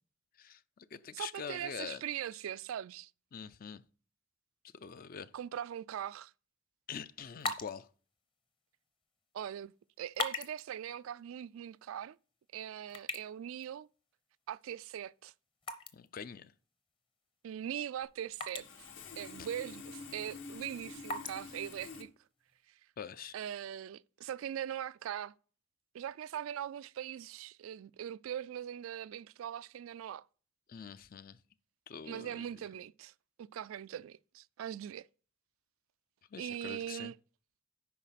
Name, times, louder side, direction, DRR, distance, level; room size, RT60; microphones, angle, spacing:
voice 1, 0.4-2.0 3.3-3.8 4.7-5.3 6.9-7.9 15.9-16.5 19.4-19.5 23.0-23.4 30.7-31.4 31.9-32.4 36.3-37.1, left 7 dB, 45° left, 0.4 m, -45 dB
voice 2, 1.1-3.1 5.3-6.3 9.3-9.7 10.0-12.2 12.5-13.9 14.5-15.3 17.4-18.7 19.2-22.1 23.3-25.3 25.9-30.3 32.0-33.1 33.4-35.1 36.4-37.1, right 10 dB, 90° right, 0.3 m, -41 dB
sound 1, 7.2-22.6, left 3 dB, 25° left, 0.8 m, -46 dB
Sawing, 18.0-18.1 18.5-22.0, left 4 dB, 70° left, 1.3 m, -48 dB
10.0 x 4.2 x 5.8 m
head